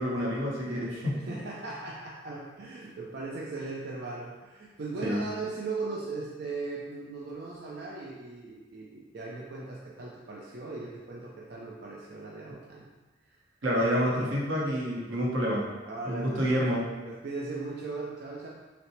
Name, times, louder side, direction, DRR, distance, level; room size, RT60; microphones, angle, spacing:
voice 1, 0.0-1.2 5.0-5.2 13.6-15.7 16.0-16.9, equal, 90° right, -4 dB, 1.0 m, -28 dB
voice 2, 1.1-12.9 13.3-13.4 15.9-16.5 17.0-18.5, right 3 dB, 55° right, -4 dB, 0.5 m, -38 dB
5.7 x 2.0 x 3.1 m, 1.2 s
head